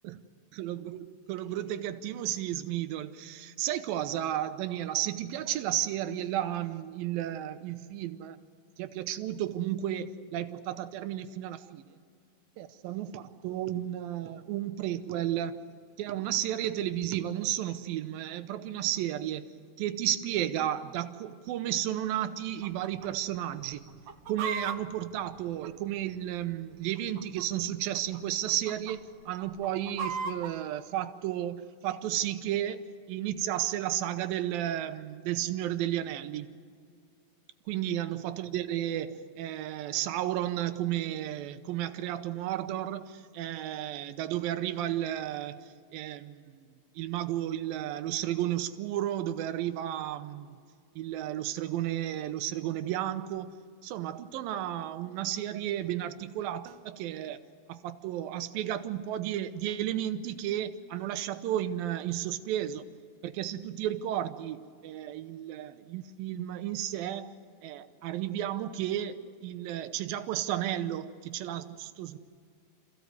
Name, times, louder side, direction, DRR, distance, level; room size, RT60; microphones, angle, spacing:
voice 1, 0.5-8.4 8.8-11.9 12.6-15.7 16.0-19.5 19.8-23.8 24.3-32.8 33.1-36.5 37.7-50.6 51.0-53.5 53.8-57.4 57.7-62.9 63.2-67.4 67.6-72.2, right 12 dB, 80° right, 2.7 m, -33 dB
Chicken rooster, 22.6-23.1 23.4-23.5 23.9-26.2 26.9-27.6 27.9-28.2 28.5-28.9 29.4-30.5, right 4 dB, 65° right, 2.1 m, -37 dB
27.0 x 15.5 x 8.1 m
omnidirectional pair, 4.1 m